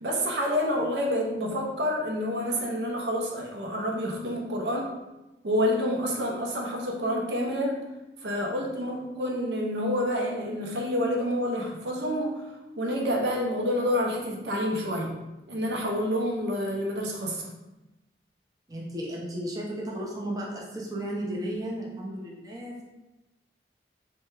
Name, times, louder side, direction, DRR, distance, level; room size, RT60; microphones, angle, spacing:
voice 1, 0.0-4.9 5.4-7.8 8.2-12.5 12.8-15.2 15.5-17.5, equal, 70° right, 0 dB, 0.6 m, -28 dB
voice 2, 18.7-22.8, right 1 dB, 20° right, -3 dB, 0.4 m, -34 dB
3.3 x 2.2 x 3.1 m, 1.0 s
head